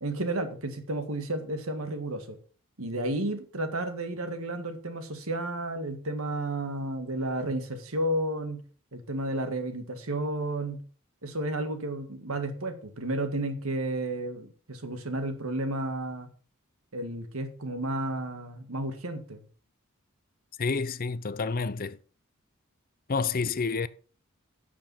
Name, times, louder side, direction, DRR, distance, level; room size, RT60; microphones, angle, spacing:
voice 1, 0.0-2.4 2.8-8.6 8.9-10.8 11.2-16.3 16.9-19.4, right 1 dB, 70° right, 1.8 m, -32 dB
voice 2, 20.6-22.0 23.1-23.9, left 4 dB, 40° left, 0.6 m, -29 dB
11.5 x 7.0 x 5.6 m
head